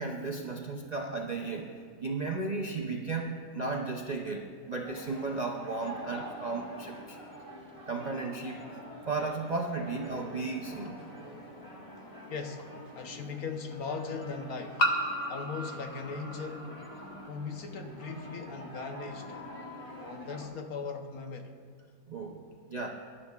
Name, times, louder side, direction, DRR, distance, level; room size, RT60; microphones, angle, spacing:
voice 1, 0.0-7.2 7.9-8.7 9.1-11.0 22.1-22.4 22.7-22.9, right 3 dB, 50° right, 0 dB, 0.5 m, -35 dB
sound 1, 4.8-20.5, equal, 20° left, 1.6 m, -46 dB
sound 2, 10.8-10.9 12.6-12.7 14.8-17.3, equal, 35° left, 0.7 m, -33 dB
voice 2, 12.3-12.7 12.9-14.8 15.3-16.8 17.3-19.5 20.0-21.5, left 5 dB, 65° left, 4 dB, 1.3 m, -39 dB
21.5 x 11.0 x 2.4 m, 2.1 s
omnidirectional pair, 1.7 m